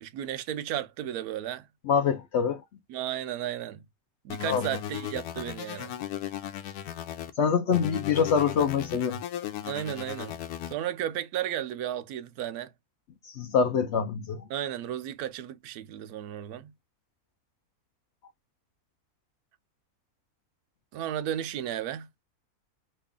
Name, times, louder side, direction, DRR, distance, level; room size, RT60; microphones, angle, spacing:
voice 1, 0.0-1.7 2.9-3.8 4.2-5.9 9.6-10.4 10.7-12.7 14.5-16.7 20.9-22.1, right 11 dB, 85° right, 1.1 m, -34 dB
voice 2, 1.8-2.6 4.5-4.6 7.4-9.2 13.2-14.5, left 6 dB, 65° left, 0.7 m, -25 dB
sound 1, 4.3-7.3 7.7-10.7, left 10 dB, 85° left, 1.1 m, -36 dB
3.2 x 2.4 x 3.5 m
omnidirectional pair, 1.6 m